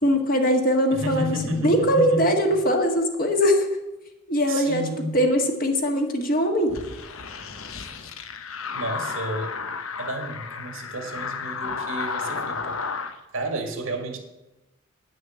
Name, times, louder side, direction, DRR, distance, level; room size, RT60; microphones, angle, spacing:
voice 1, 0.0-1.4 1.6-3.7 4.3-4.8 5.1-6.7, equal, 40° left, 3 dB, 1.6 m, -21 dB
voice 2, 0.9-2.3 4.5-5.2 8.7-9.7 10.0-12.8 13.3-14.2, right 1 dB, 80° right, 4 dB, 2.0 m, -31 dB
sound 1, 6.7-13.1, left 5 dB, 85° left, 1.0 m, -32 dB
10.0 x 6.4 x 7.5 m, 1.0 s
head